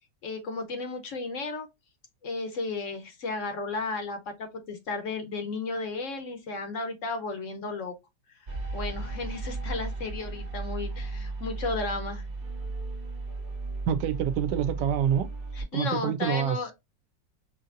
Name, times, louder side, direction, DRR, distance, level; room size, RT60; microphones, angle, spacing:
voice 1, 0.2-1.7 2.2-7.9 8.7-12.2 15.5-16.7, left 3 dB, 60° left, 0.9 m, -34 dB
sound 1, 8.5-15.6, right 3 dB, 45° right, 0.7 m, -35 dB
voice 2, 13.9-15.3 15.7-16.6, right 9 dB, 75° right, 1.2 m, -26 dB
5.6 x 2.7 x 2.5 m
omnidirectional pair, 1.9 m